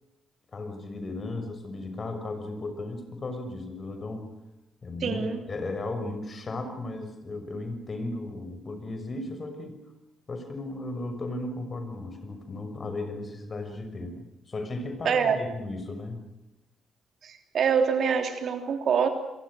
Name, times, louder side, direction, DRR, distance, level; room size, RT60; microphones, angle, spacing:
voice 1, 0.5-4.3 4.8-9.8 10.3-16.2, left 2 dB, 40° left, 7 dB, 6.3 m, -35 dB
voice 2, 5.0-5.4 15.0-15.4 17.2-19.1, right 7 dB, 55° right, 7 dB, 3.2 m, -25 dB
29.5 x 23.0 x 6.4 m, 0.94 s
figure-of-eight pair, 45°, 0 cm